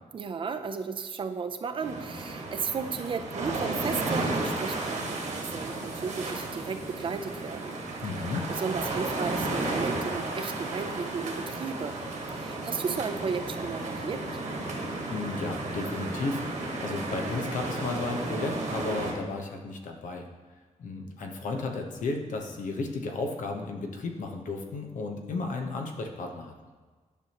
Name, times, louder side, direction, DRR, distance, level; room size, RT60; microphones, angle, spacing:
voice 1, 0.1-7.8 8.5-12.0 12.3-14.2, right 5 dB, 40° right, 8 dB, 0.5 m, -34 dB
sound 1, 1.8-19.1, right 2 dB, 65° right, 1.4 m, -33 dB
voice 2, 8.0-8.5 15.1-16.4 16.8-20.3 20.8-26.5, left 3 dB, 90° left, 3 dB, 1.0 m, -33 dB
10.5 x 6.1 x 2.9 m, 1.4 s
wide cardioid pair, 165°, 13 cm